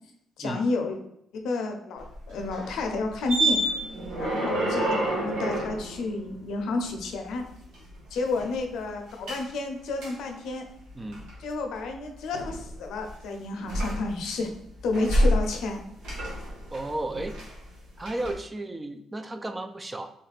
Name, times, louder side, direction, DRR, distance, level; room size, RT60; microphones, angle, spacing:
voice 1, 0.4-1.0 1.3-3.6 4.2-7.5 8.1-10.7 11.4-14.5 14.8-15.8, left 3 dB, 80° left, 3 dB, 0.5 m, -31 dB
sound 1, 2.0-7.1 7.4-8.6 9.3-9.4 10.0-10.1 10.8-11.3 12.3-13.1 13.6-14.4 14.8-15.8 16.0-17.7 18.0-18.3, right 1 dB, 90° right, 1.1 m, -29 dB
voice 2, 16.7-17.4 18.0-20.1, right 2 dB, 20° right, 7 dB, 0.3 m, -33 dB
3.2 x 2.4 x 3.3 m, 0.77 s
cardioid pair, 90°, 0 cm